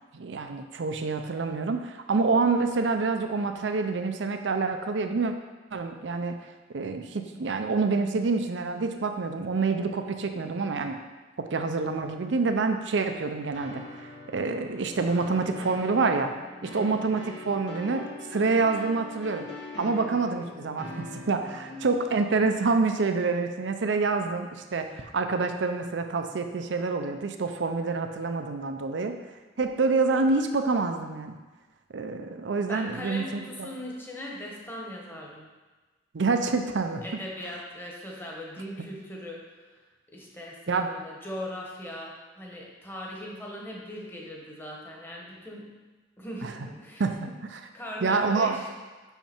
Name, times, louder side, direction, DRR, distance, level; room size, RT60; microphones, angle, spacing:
voice 1, 0.1-5.3 5.7-6.4 6.7-11.0 11.4-16.3 16.6-18.1 18.3-19.5 19.8-29.1 29.6-31.4 31.9-33.7 36.1-37.0 40.7-40.9 46.4-46.5 47.0-47.2 47.5-47.6 48.0-48.6, right 4 dB, 80° right, 6 dB, 0.5 m, -27 dB
sound 1, 13.5-21.8, left 2 dB, 75° left, 1.1 m, -42 dB
voice 2, 16.6-17.0 21.7-22.0 32.6-35.5 37.0-39.7 40.1-45.7 46.2-47.3 47.7-48.6, left 1 dB, 10° left, -2 dB, 1.1 m, -39 dB
5.8 x 5.7 x 4.4 m, 1.3 s
head